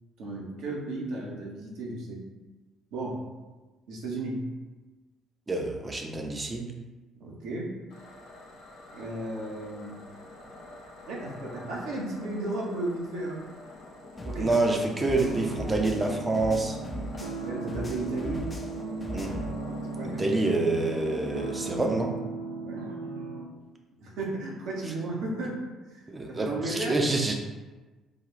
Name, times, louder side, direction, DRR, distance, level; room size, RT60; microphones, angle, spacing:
voice 1, 0.2-2.2 2.9-3.3 3.9-4.5 7.2-7.8 8.9-10.0 11.1-13.4 14.2-14.6 17.4-18.5 19.9-20.4 22.6-22.9 24.0-26.0 26.3-27.0, right 2 dB, 65° right, -3 dB, 0.8 m, -34 dB
voice 2, 5.5-6.6 14.3-16.8 19.1-19.3 20.0-22.1 26.1-27.3, right 2 dB, 25° right, 1 dB, 0.6 m, -27 dB
sound 1, 7.9-21.9, left 2 dB, 70° left, 0.8 m, -45 dB
sound 2, 14.2-17.4 17.7-19.5, equal, 25° left, 0.5 m, -38 dB
sound 3, 15.0-23.4, right 3 dB, 80° right, 0.4 m, -37 dB
3.9 x 2.3 x 3.1 m, 1.2 s
figure-of-eight pair, 50°, 0 cm